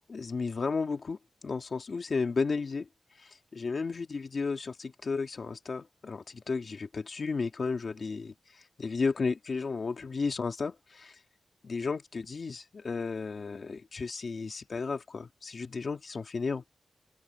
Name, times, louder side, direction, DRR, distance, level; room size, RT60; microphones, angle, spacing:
voice 1, 0.1-1.2 1.4-2.9 3.5-8.3 8.8-11.1 11.6-16.6, left 4 dB, 50° left, 2.2 m, -33 dB
open air
wide cardioid pair, 130°, 0 cm